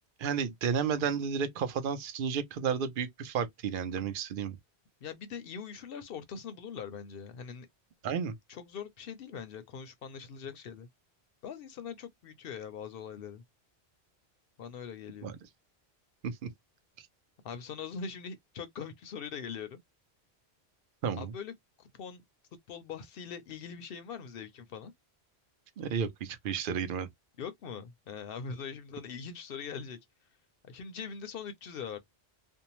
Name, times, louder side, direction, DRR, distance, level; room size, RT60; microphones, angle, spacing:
voice 1, 0.2-4.6 8.0-8.3 15.2-15.3 16.2-16.5 21.0-21.3 25.8-27.1, right 7 dB, 60° right, 0.7 m, -32 dB
voice 2, 5.0-7.7 8.5-10.9 11.4-13.4 14.6-15.3 17.4-19.8 21.2-21.5 21.8-22.2 22.7-24.9 27.4-30.0 30.6-32.0, left 6 dB, 65° left, 0.7 m, -42 dB
2.6 x 2.0 x 2.8 m
omnidirectional pair, 1.1 m